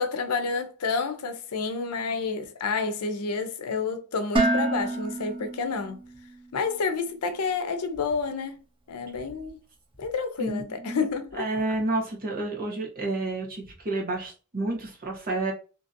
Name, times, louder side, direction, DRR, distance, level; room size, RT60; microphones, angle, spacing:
voice 1, 0.0-6.0 6.5-8.6 8.9-9.6 10.0-11.5, left 4 dB, 85° left, 0.6 m, -29 dB
Dishes pots and pans, 4.4-6.4, right 2 dB, 25° right, 0.4 m, -27 dB
voice 2, 10.4-11.1 11.4-15.5, right 2 dB, 40° right, 1.0 m, -30 dB
2.9 x 2.6 x 2.5 m
head